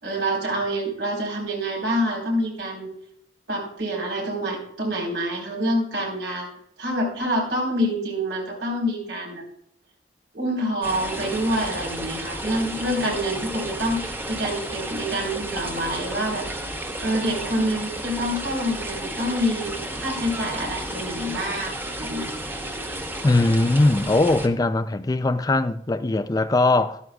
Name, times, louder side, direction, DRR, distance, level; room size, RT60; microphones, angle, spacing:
voice 1, 0.0-2.9 3.5-6.5 6.8-9.4 10.3-16.4 17.0-22.3, equal, 75° right, 4.1 m, -27 dB
sound 1, 10.8-24.5, right 1 dB, 15° right, 1.0 m, -32 dB
voice 2, 23.2-27.0, left 2 dB, 20° left, 0.4 m, -20 dB
13.0 x 12.5 x 2.4 m
head